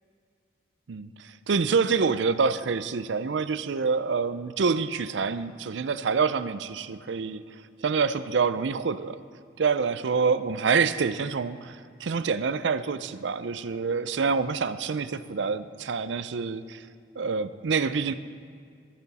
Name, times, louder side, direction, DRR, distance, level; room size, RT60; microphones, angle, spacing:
voice 1, 1.5-7.4 7.8-9.2 9.6-16.8 17.2-18.1, right 5 dB, 80° right, 13 dB, 0.5 m, -26 dB
14.5 x 11.0 x 4.2 m, 2.3 s
head